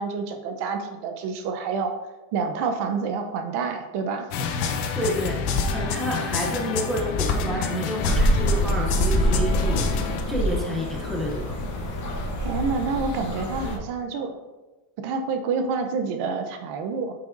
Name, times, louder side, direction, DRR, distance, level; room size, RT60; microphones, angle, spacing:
voice 1, 0.0-1.9 2.3-4.3 12.4-14.4 15.0-17.1, right 5 dB, 55° right, 6 dB, 0.8 m, -28 dB
sound 1, 4.3-10.2, left 5 dB, 60° left, 0.9 m, -27 dB
voice 2, 4.9-11.5, equal, ahead, -2 dB, 0.7 m, -29 dB
sound 2, 8.0-13.8, equal, 35° left, 1.1 m, -25 dB
8.9 x 5.8 x 2.6 m, 1.2 s
cardioid pair, 145°, 49 cm